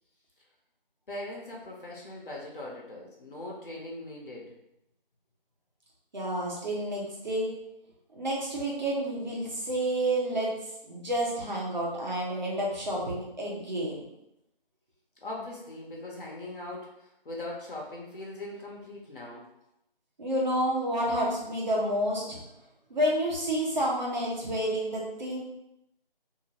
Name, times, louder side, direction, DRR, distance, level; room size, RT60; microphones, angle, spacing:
voice 1, 1.1-4.5 15.2-19.5, left 2 dB, 65° left, -3 dB, 0.9 m, -40 dB
voice 2, 6.1-7.5 8.1-10.5 10.8-14.0 20.2-22.4 22.9-25.4, right 1 dB, 50° right, -4 dB, 1.0 m, -29 dB
2.9 x 2.6 x 2.8 m, 0.84 s
figure-of-eight pair, 170°, 29 cm